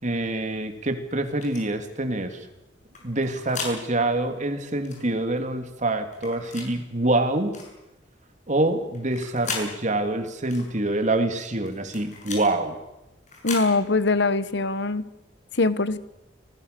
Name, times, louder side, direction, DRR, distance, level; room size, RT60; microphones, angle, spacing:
voice 1, 0.0-2.5 3.0-7.6 8.5-12.8, right 2 dB, 40° right, 6 dB, 2.9 m, -26 dB
sound 1, 1.4-1.6 2.9-3.8 4.8-5.0 6.1-6.7 7.5-7.7 8.9-9.7 10.5-10.7 11.7-12.5 13.3-13.7, left 4 dB, 40° left, 7.3 m, -35 dB
voice 2, 13.4-15.0 15.5-16.0, left 3 dB, 65° left, 14 dB, 1.3 m, -22 dB
29.5 x 20.0 x 6.9 m, 0.96 s
head